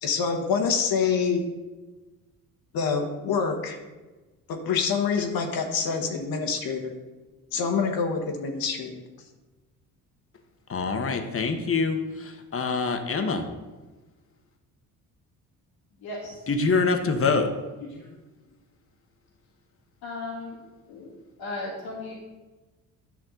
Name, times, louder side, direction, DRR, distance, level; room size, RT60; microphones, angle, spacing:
voice 1, 0.0-1.4 2.7-3.8 4.6-6.9 7.5-9.0, left 5 dB, 60° left, 4 dB, 1.5 m, -26 dB
voice 2, 10.7-13.4 16.5-17.5, left 4 dB, 35° left, 6 dB, 1.3 m, -25 dB
voice 3, 16.0-16.4 17.8-18.1 20.0-20.6 20.9-21.1 21.4-22.2, left 2 dB, 75° left, -5 dB, 2.0 m, -36 dB
10.5 x 6.0 x 3.9 m, 1.2 s
hypercardioid pair, 60°, 41 cm